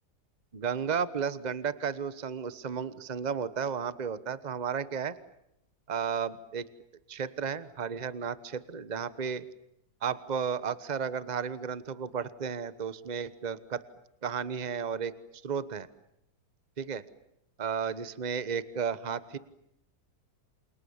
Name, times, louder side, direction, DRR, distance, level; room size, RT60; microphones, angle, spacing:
voice 1, 0.5-5.2 5.9-6.7 7.1-9.5 10.0-13.8 14.2-15.1 15.4-15.9 16.8-17.0 17.6-19.4, right 6 dB, 30° right, 15 dB, 1.2 m, -33 dB
29.0 x 28.5 x 7.3 m, 0.81 s
omnidirectional pair, 1.7 m